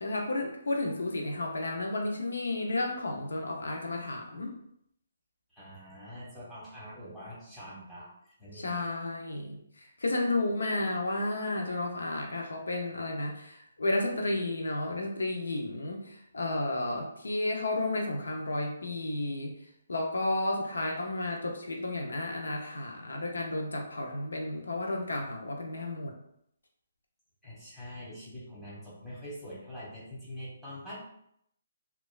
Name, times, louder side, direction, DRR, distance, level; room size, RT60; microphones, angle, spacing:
voice 1, 0.0-4.5 8.5-19.5 19.9-26.1, left 2 dB, 85° left, 2 dB, 0.5 m, -32 dB
voice 2, 5.5-8.8 27.4-31.0, equal, ahead, -10 dB, 1.0 m, -44 dB
2.8 x 2.3 x 2.3 m, 0.72 s
hypercardioid pair, 150°, 0 cm